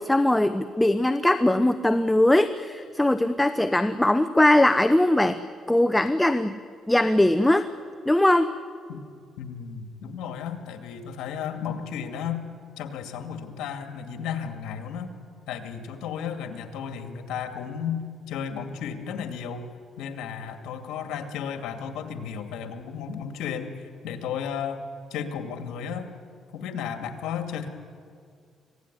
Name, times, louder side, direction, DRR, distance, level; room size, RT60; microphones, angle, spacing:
voice 1, 0.0-5.4 5.7-6.5 6.9-7.7 8.1-8.5, left 1 dB, 10° left, 11 dB, 0.8 m, -20 dB
voice 2, 9.4-12.4 12.8-15.1 15.5-19.6 20.0-24.8 25.1-26.1 26.5-27.7, left 7 dB, 90° left, 6 dB, 2.3 m, -33 dB
25.5 x 18.0 x 10.0 m, 2.3 s
cardioid pair, 90°, 0 cm